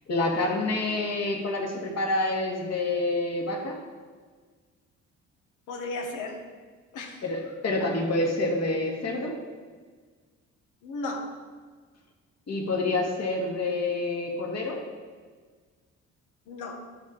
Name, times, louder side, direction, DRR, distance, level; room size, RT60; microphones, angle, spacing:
voice 1, 0.1-3.8 7.2-9.4 12.5-14.8, left 2 dB, 55° left, 0 dB, 2.2 m, -27 dB
voice 2, 5.7-6.4 6.9-7.2 7.8-7.9 10.8-11.4 16.5-16.8, left 2 dB, 85° left, 3 dB, 1.5 m, -35 dB
13.0 x 4.6 x 4.1 m, 1.5 s
cardioid pair, 90°, 30 cm